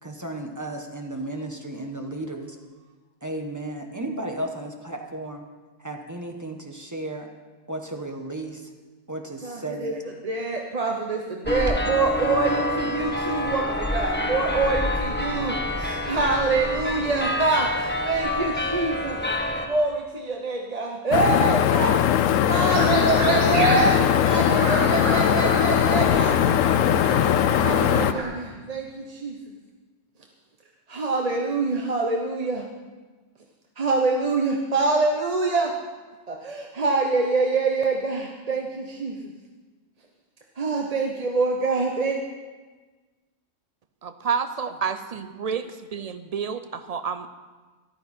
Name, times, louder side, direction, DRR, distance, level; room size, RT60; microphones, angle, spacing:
voice 1, 0.0-2.6 3.2-5.5 5.8-7.3 7.7-8.7 9.1-9.9, right 1 dB, 15° right, 3 dB, 1.2 m, -34 dB
voice 2, 9.4-19.2 19.6-26.4 27.3-29.4 30.9-32.6 33.8-35.7 36.3-39.2 40.6-42.2, right 3 dB, 35° right, 1 dB, 0.9 m, -25 dB
sound 1, 11.5-19.7, left 1 dB, 10° left, 0.9 m, -27 dB
sound 2, 21.1-28.1, left 10 dB, 85° left, 0.9 m, -20 dB
sound 3, 22.7-28.2, right 1 dB, 70° right, 3.5 m, -29 dB
voice 3, 44.0-45.6 45.9-47.3, right 6 dB, 85° right, 10 dB, 0.3 m, -29 dB
14.0 x 12.0 x 4.4 m, 1.3 s
omnidirectional pair, 1.3 m